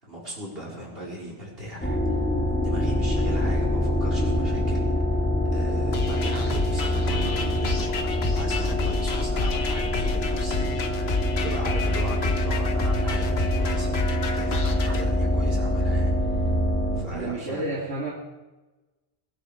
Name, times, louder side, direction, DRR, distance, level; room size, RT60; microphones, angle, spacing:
voice 1, 0.0-2.2 2.5-4.8 5.5-16.5 16.9-17.8, equal, 60° right, -4 dB, 5.1 m, -38 dB
sound 1, 1.8-17.0, left 1 dB, 10° left, 2.1 m, -25 dB
sound 2, 5.9-15.0, left 4 dB, 75° left, 1.5 m, -31 dB
voice 2, 17.1-18.1, right 2 dB, 90° right, -4 dB, 2.6 m, -30 dB
21.0 x 12.5 x 5.1 m, 1.1 s
omnidirectional pair, 1.1 m